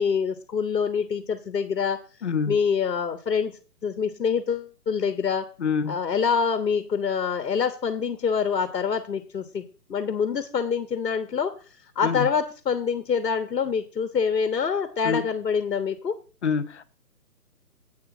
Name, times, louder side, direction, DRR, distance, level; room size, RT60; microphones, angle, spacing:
voice 1, 0.0-2.0 2.5-5.5 5.9-11.5 11.8-16.1, left 6 dB, 80° left, 1.4 m, -26 dB
voice 2, 2.2-2.6 5.6-6.0 12.0-12.3 15.0-15.2 16.4-16.8, left 6 dB, 45° left, 0.8 m, -26 dB
8.5 x 5.9 x 6.0 m
hypercardioid pair, 165°, 48 cm